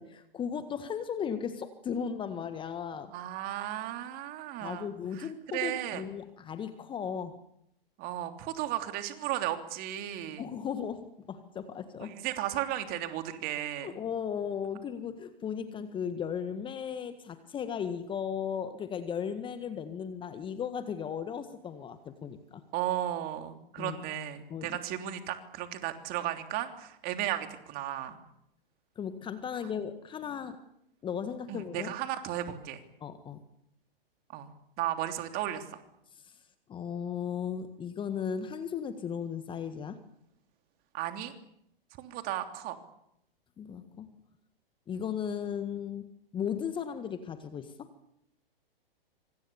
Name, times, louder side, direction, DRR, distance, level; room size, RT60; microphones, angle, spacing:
voice 1, 0.0-3.1 4.6-7.4 10.4-12.2 13.8-22.6 23.8-24.0 24.5-24.8 29.0-30.6 31.0-31.9 33.0-33.4 36.2-36.3 36.7-40.0 43.6-44.1 44.9-47.9, left 7 dB, 15° left, 11 dB, 1.6 m, -36 dB
voice 2, 3.1-4.9 5.1-6.0 8.0-10.4 12.0-14.0 22.7-28.2 31.5-32.8 34.3-34.5 34.8-35.8 40.9-41.3 42.0-42.8, right 12 dB, 30° right, 7 dB, 3.2 m, -35 dB
26.0 x 26.0 x 7.1 m, 0.76 s
figure-of-eight pair, 110°, 29 cm